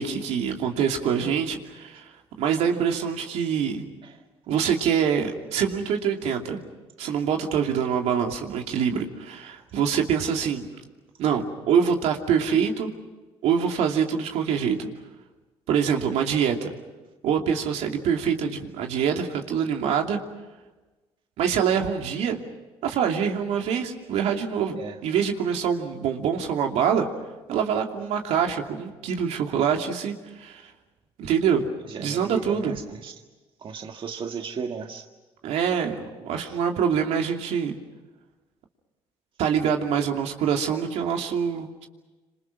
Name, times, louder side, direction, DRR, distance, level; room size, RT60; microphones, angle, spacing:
voice 1, 0.0-2.1 2.4-3.8 4.5-6.6 7.0-10.7 11.2-12.9 13.4-14.9 15.7-16.7 17.2-20.2 21.4-22.4 22.8-27.1 27.5-30.7 31.2-31.7 32.0-32.8 35.4-37.8 39.4-41.9, right 7 dB, 80° right, 3 dB, 2.7 m, -25 dB
voice 2, 31.9-33.1 33.6-35.1 36.4-36.6, right 6 dB, 50° right, 4 dB, 1.7 m, -35 dB
27.0 x 26.5 x 6.2 m, 1.2 s
supercardioid pair, 80°, 11 cm